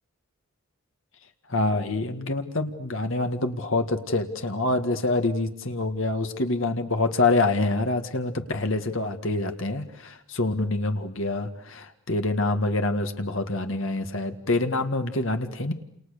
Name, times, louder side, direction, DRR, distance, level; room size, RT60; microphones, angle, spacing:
voice 1, 1.5-15.7, left 2 dB, 65° left, 6 dB, 1.9 m, -26 dB
29.5 x 28.0 x 6.7 m, 0.70 s
head